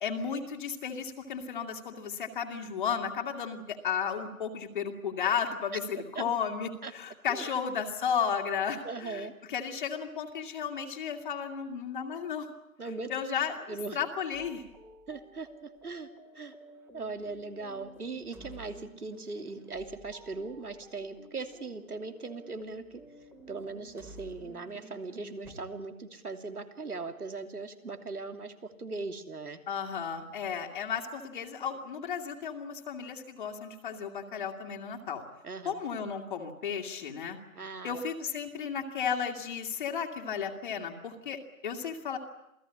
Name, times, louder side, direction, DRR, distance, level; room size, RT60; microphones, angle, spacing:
voice 1, 0.0-12.5 13.1-14.6 29.7-35.2 35.7-37.4 37.8-42.2, left 7 dB, 35° left, 2 dB, 2.2 m, -34 dB
voice 2, 8.8-9.3 12.8-13.1 13.7-14.0 15.1-15.5 15.8-16.1 16.3-16.5 16.9-23.0 23.5-28.5 28.8-29.6 35.4-35.7 37.5-38.0, right 3 dB, 90° right, 8 dB, 3.1 m, -39 dB
sound 1, 14.3-25.6, right 1 dB, 5° right, 1.8 m, -53 dB
27.5 x 17.0 x 10.0 m, 0.85 s
hypercardioid pair, 155°, 43 cm